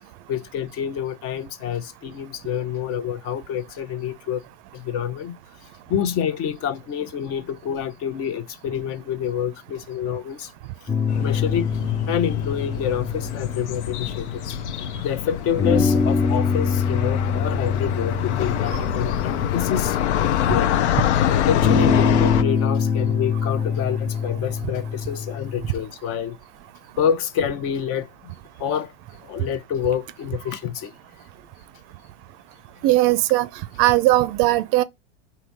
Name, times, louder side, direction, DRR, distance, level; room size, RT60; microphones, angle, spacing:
voice 1, 0.3-4.4 4.7-5.4 5.9-10.5 11.2-11.7 12.1-14.6 15.0-20.0 20.5-20.9 21.3-26.4 27.0-28.1 28.6-28.9 29.2-30.9, left 8 dB, 40° left, 0.7 m, -27 dB
sound 1, 10.9-14.8 15.6-20.7 21.6-25.8, left 5 dB, 10° left, 0.4 m, -24 dB
sound 2, 11.1-22.4, left 10 dB, 75° left, 0.7 m, -25 dB
voice 2, 32.8-33.5 33.8-34.8, right 16 dB, 45° right, 0.5 m, -18 dB
4.0 x 2.8 x 4.5 m
hypercardioid pair, 105°, 35 cm